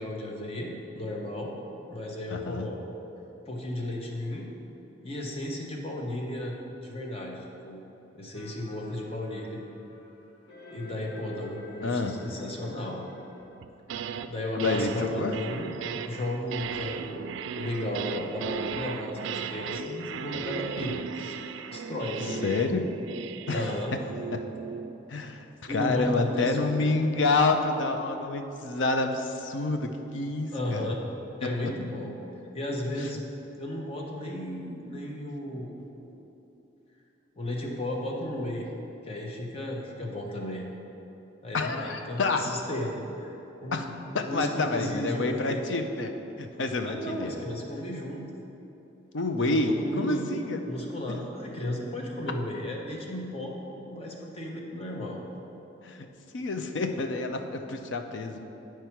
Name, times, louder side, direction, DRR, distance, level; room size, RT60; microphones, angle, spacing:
voice 1, 0.0-1.6 1.9-2.8 3.5-4.5 5.0-7.8 8.1-9.6 10.7-13.0 14.0-15.7 16.0-21.3 21.7-22.5 23.5-23.9 25.7-26.9 30.5-31.0 31.4-32.2 32.5-33.2 33.6-35.7 36.0-36.2 37.4-38.7 39.0-40.7 41.4-44.0 44.2-45.6 46.8-48.3 49.4-50.3 50.6-55.2, left 1 dB, 35° left, -1 dB, 0.9 m, -34 dB
voice 2, 2.3-2.7 11.8-12.2 14.6-15.3 22.4-22.8 23.5-23.7 24.3-24.4 25.1-30.9 41.5-42.4 43.7-43.8 44.1-46.1 46.4-47.3 49.1-50.6 55.8-56.1 56.3-58.4, left 3 dB, 90° left, 6 dB, 0.6 m, -28 dB
sound 1, 8.3-13.5, left 2 dB, 70° left, 1.6 m, -49 dB
sound 2, 13.6-14.3 14.6-25.0, right 7 dB, 85° right, 0.3 m, -36 dB
9.9 x 4.6 x 4.6 m, 3.0 s
head